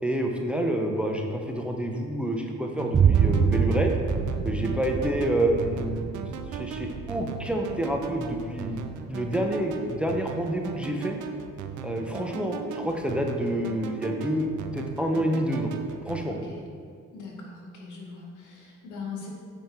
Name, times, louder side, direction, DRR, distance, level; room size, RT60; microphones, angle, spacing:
voice 1, 0.0-3.9 4.4-6.1 6.5-8.8 9.1-11.2 11.8-14.5 14.7-15.7 16.0-16.3, right 1 dB, 5° right, 2 dB, 0.8 m, -28 dB
sound 1, 2.8-16.2, right 6 dB, 80° right, 0.6 m, -38 dB
Boom, 2.9-10.8, right 7 dB, 25° right, 0.4 m, -27 dB
voice 2, 16.2-16.6 17.1-19.3, left 4 dB, 80° left, -1 dB, 1.7 m, -40 dB
7.8 x 5.1 x 4.5 m, 2.2 s
cardioid pair, 90°, 30 cm